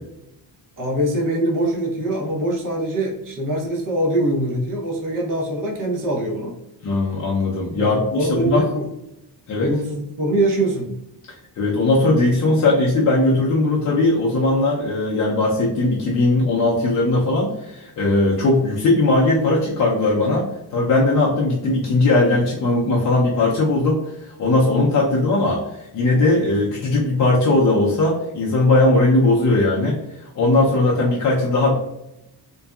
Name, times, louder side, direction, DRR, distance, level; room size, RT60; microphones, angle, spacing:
voice 1, 0.8-6.6 7.8-8.9 9.6-10.9, right 1 dB, 50° right, -1 dB, 0.7 m, -23 dB
voice 2, 6.8-8.7 9.5-9.7 11.6-31.7, left 2 dB, 45° left, -5 dB, 0.4 m, -19 dB
2.6 x 2.2 x 2.2 m, 0.88 s
wide cardioid pair, 175°, 42 cm